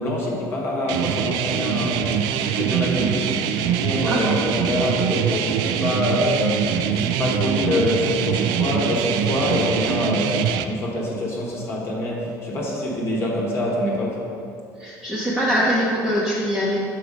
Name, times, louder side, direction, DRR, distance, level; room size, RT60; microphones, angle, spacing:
voice 1, 0.0-14.3, left 1 dB, 35° left, -3 dB, 1.0 m, -25 dB
sound 1, 0.9-10.6, right 8 dB, 70° right, 0.4 m, -23 dB
voice 2, 4.0-4.4 14.8-16.8, equal, 5° right, -7 dB, 0.7 m, -22 dB
6.1 x 4.6 x 5.2 m, 2.5 s
cardioid pair, 165°, 7 cm